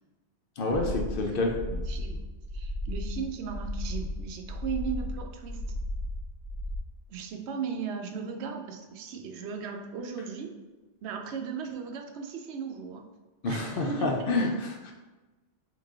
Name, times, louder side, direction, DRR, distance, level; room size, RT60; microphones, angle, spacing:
voice 1, 0.6-1.6 13.4-14.9, left 2 dB, 60° left, 1 dB, 0.7 m, -28 dB
sound 1, 0.7-6.8, left 1 dB, 50° right, 0.5 m, -35 dB
voice 2, 1.7-2.2 2.5-5.6 7.1-10.6 11.0-13.0 13.4-14.4, right 6 dB, 75° right, 3 dB, 0.8 m, -37 dB
3.7 x 3.1 x 3.6 m, 1.1 s
omnidirectional pair, 1.2 m